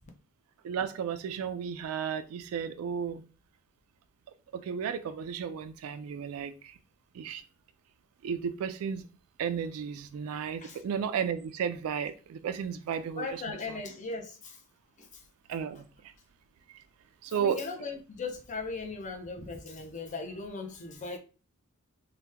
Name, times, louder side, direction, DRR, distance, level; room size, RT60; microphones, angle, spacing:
voice 1, 0.6-3.2 4.5-6.7 7.1-7.4 8.2-9.1 9.4-13.8 15.5-15.8 17.2-17.6, right 7 dB, 80° right, 0.3 m, -33 dB
voice 2, 13.2-14.6 15.0-15.2 17.3-21.2, left 3 dB, 35° left, 0.6 m, -38 dB
2.8 x 2.2 x 3.4 m
head